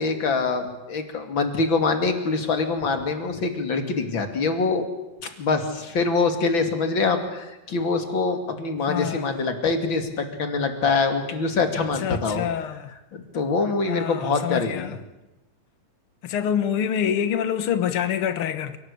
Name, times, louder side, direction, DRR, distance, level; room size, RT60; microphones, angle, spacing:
voice 1, 0.0-4.9 5.2-12.5 13.1-14.9, left 4 dB, 35° left, 2.7 m, -24 dB
voice 2, 8.9-9.3 11.8-12.9 13.9-15.0 16.2-18.8, left 9 dB, 90° left, 1.2 m, -26 dB
29.5 x 18.0 x 8.6 m
omnidirectional pair, 4.5 m